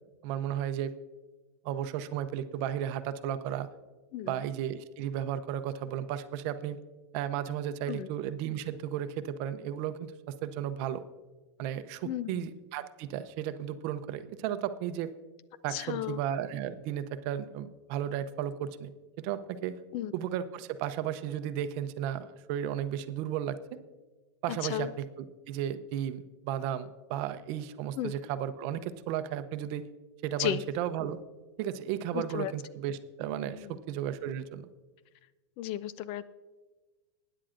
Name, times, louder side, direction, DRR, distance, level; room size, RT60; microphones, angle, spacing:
voice 1, 0.2-0.9 1.6-3.7 4.2-6.8 7.1-11.0 11.6-15.1 15.6-19.8 20.1-23.8 24.4-29.9 30.2-31.2 31.6-34.7, right 10 dB, 45° right, 11 dB, 0.7 m, -34 dB
voice 2, 12.0-12.5 15.7-16.2 19.9-20.1 24.6-24.9 28.0-28.1 30.4-30.6 32.1-32.5 33.6-33.8 35.6-36.3, left 12 dB, 40° left, 16 dB, 0.4 m, -34 dB
20.5 x 10.0 x 2.5 m, 1.3 s
supercardioid pair, 135°, 15 cm